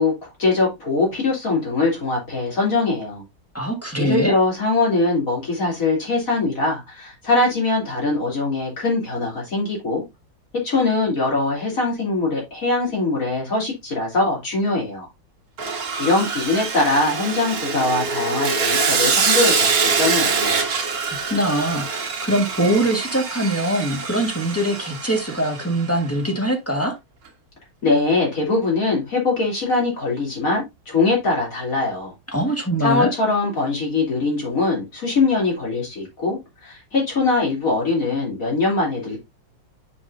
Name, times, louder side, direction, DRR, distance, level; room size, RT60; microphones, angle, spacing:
voice 1, 0.0-3.2 4.0-10.0 10.5-15.1 16.0-20.6 27.8-32.1 32.8-39.2, left 3 dB, 45° left, 3.6 m, -22 dB
voice 2, 3.5-4.4 21.3-26.9 32.3-33.1, right 1 dB, 10° left, 1.5 m, -22 dB
Sawing, 15.6-25.8, right 5 dB, 50° right, 1.6 m, -24 dB
7.0 x 6.3 x 2.7 m
omnidirectional pair, 2.1 m